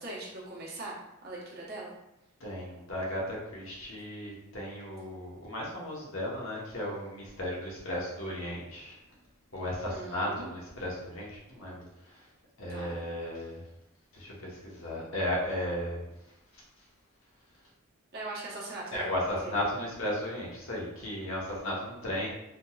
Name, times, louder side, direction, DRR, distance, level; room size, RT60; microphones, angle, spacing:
voice 1, 0.0-1.9 9.9-10.5 12.7-13.0 18.1-19.1 19.4-19.5, right 2 dB, 45° right, -4 dB, 0.9 m, -41 dB
voice 2, 2.4-9.0 9.5-12.3 12.6-13.6 14.1-16.1 16.5-16.6 18.9-22.3, left 1 dB, 70° left, -4 dB, 1.0 m, -35 dB
3.7 x 2.8 x 2.3 m, 0.88 s
head